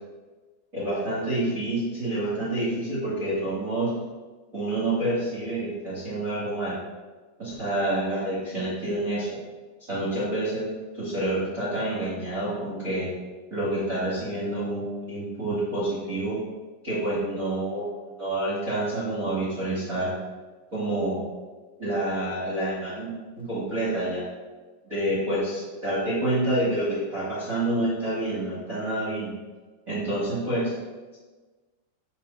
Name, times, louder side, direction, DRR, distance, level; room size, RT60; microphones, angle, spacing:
voice 1, 0.7-3.9 4.5-6.8 7.4-9.3 9.9-10.7 10.9-13.1 13.5-16.4 16.8-20.1 20.7-21.2 21.8-24.2 24.8-29.3 29.9-30.7, right 1 dB, 30° right, -10 dB, 1.6 m, -28 dB
11.5 x 4.7 x 2.7 m, 1.3 s
omnidirectional pair, 5.2 m